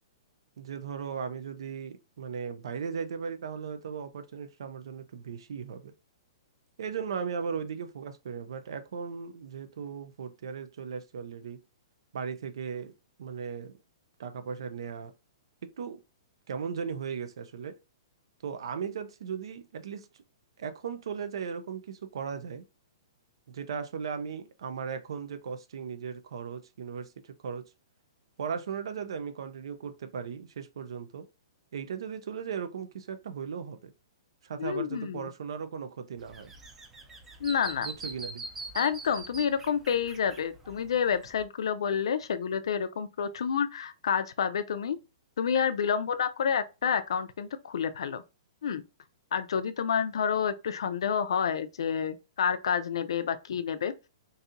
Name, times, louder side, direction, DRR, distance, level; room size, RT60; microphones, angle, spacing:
voice 1, 0.6-5.9 6.8-11.6 12.1-12.9 13.2-13.8 14.2-15.1 15.6-16.0 16.5-17.7 18.4-20.2 20.6-22.6 23.5-27.7 28.4-31.2 31.7-33.9 34.4-36.5 37.8-38.4, right 6 dB, 70° right, 0.5 m, -37 dB
voice 2, 34.6-35.3 37.4-37.9 38.7-45.0 45.4-48.2 48.6-48.8 49.3-53.9, left 7 dB, 75° left, 0.4 m, -29 dB
sound 1, 36.2-41.4, right 2 dB, 10° right, 0.4 m, -43 dB
4.0 x 2.6 x 2.5 m
hypercardioid pair, 170°, 3 cm